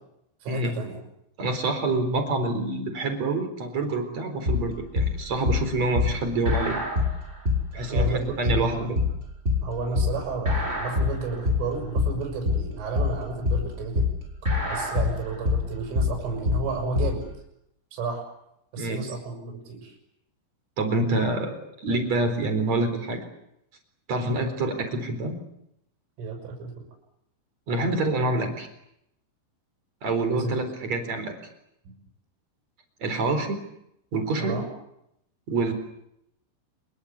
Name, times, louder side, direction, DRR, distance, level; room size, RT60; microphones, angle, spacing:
voice 1, 0.4-1.0 7.9-8.9 9.6-14.1 14.7-17.2 17.9-18.2 18.7-19.9 26.2-26.7 30.3-30.6 34.4-34.6, right 4 dB, 75° right, 2 dB, 8.4 m, -32 dB
voice 2, 1.4-6.8 7.7-9.0 18.8-19.0 20.8-23.2 24.1-25.4 27.7-28.7 30.0-31.3 33.0-33.6 34.1-34.6 35.5-35.7, right 2 dB, 35° right, 7 dB, 5.0 m, -27 dB
sound 1, 4.5-17.2, left 4 dB, 15° right, 5.7 m, -25 dB
27.5 x 23.0 x 8.3 m, 0.79 s
omnidirectional pair, 5.7 m